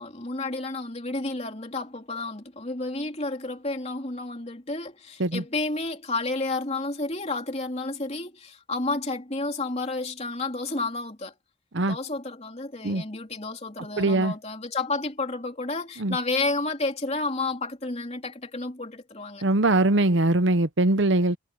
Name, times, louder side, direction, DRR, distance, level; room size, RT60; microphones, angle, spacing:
voice 1, 0.0-11.3 11.9-19.4, left 3 dB, 30° left, 3.3 m, -31 dB
voice 2, 14.0-14.3 16.0-16.2 19.4-21.4, right 2 dB, 60° right, 0.9 m, -22 dB
head